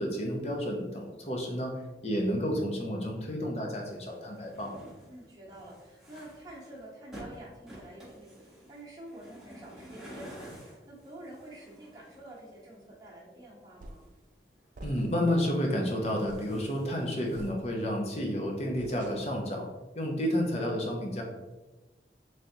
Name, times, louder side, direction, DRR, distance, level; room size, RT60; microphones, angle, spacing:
voice 1, 0.0-1.8 2.0-4.7 14.8-19.7 19.9-21.2, equal, 35° left, 0 dB, 0.7 m, -31 dB
sound 1, 3.8-12.8 13.4-14.4 14.6-17.5, equal, ahead, 1.1 m, -51 dB
voice 2, 5.1-14.0, right 1 dB, 20° right, -5 dB, 1.0 m, -48 dB
sound 2, 13.8-14.2 14.7-15.4 15.7-15.9 16.3-16.6 17.3-18.0 18.8-19.5, right 1 dB, 45° right, 0.4 m, -47 dB
3.9 x 3.3 x 2.8 m, 1.1 s
head